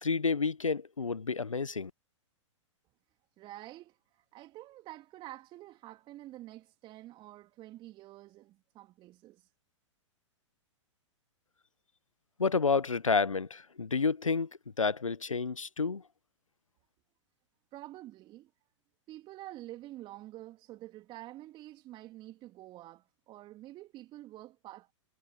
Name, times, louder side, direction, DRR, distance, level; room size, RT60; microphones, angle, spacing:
voice 1, 0.0-1.9 12.4-14.5 14.8-16.0, left 4 dB, 85° left, 1.0 m, -30 dB
voice 2, 3.4-9.5 17.7-18.5 19.1-24.9, right 15 dB, 30° right, 3.0 m, -48 dB
figure-of-eight pair, 105°, 16 cm